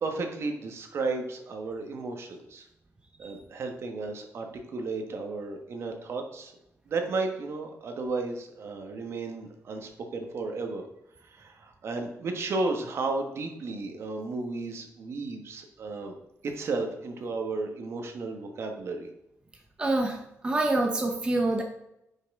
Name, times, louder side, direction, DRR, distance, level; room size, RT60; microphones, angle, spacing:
voice 1, 0.0-2.7 3.2-4.5 4.7-6.5 6.9-10.8 11.2-16.1 16.5-19.1, right 3 dB, 50° right, 4 dB, 1.3 m, -33 dB
voice 2, 19.8-21.6, right 2 dB, 20° right, 2 dB, 0.8 m, -26 dB
9.8 x 5.6 x 3.6 m, 0.83 s
cardioid pair, 155°, 6 cm